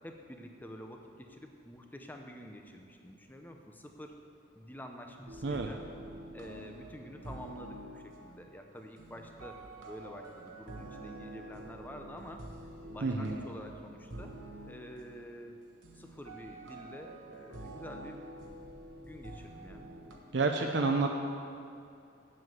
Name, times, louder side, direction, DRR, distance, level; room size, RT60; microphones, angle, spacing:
voice 1, 0.0-4.2 4.6-5.8 6.3-9.6 9.9-12.5 12.9-14.3 14.6-15.6 16.0-18.2 19.0-19.8, equal, 10° left, 4 dB, 0.7 m, -48 dB
sound 1, 5.3-20.2, right 1 dB, 85° right, 1.3 m, -48 dB
voice 2, 13.0-13.4 20.3-21.1, right 3 dB, 60° right, 3 dB, 0.6 m, -29 dB
7.8 x 7.7 x 7.8 m, 2.5 s
head